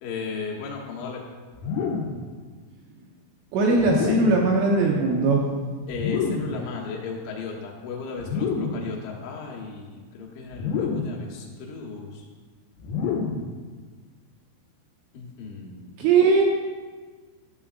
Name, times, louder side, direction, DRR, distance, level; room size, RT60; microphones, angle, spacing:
voice 1, 0.0-1.2 5.9-12.2 15.1-16.0, left 4 dB, 75° left, -2 dB, 3.1 m, -35 dB
sound 1, 1.6-2.3 3.8-4.5 5.9-6.6 8.2-8.9 10.5-11.3 12.8-13.5, left 5 dB, 90° left, 3.4 m, -28 dB
voice 2, 3.5-5.4 16.0-16.4, right 3 dB, 85° right, -1 dB, 2.6 m, -19 dB
12.5 x 7.0 x 2.4 m, 1.5 s
omnidirectional pair, 5.9 m